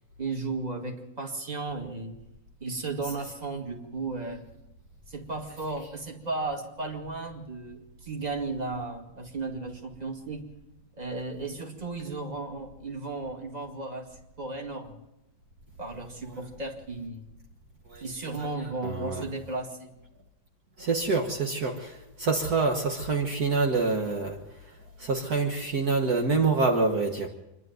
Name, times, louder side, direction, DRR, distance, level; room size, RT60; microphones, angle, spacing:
voice 1, 0.2-2.1 2.6-4.5 5.1-10.5 11.0-14.1 14.4-15.0 15.8-17.2 18.0-19.9, right 3 dB, 20° right, 3 dB, 2.3 m, -35 dB
voice 2, 18.8-19.2 20.8-24.4 25.0-27.3, right 4 dB, 55° right, 2 dB, 1.9 m, -26 dB
26.0 x 11.5 x 9.3 m, 0.93 s
omnidirectional pair, 2.0 m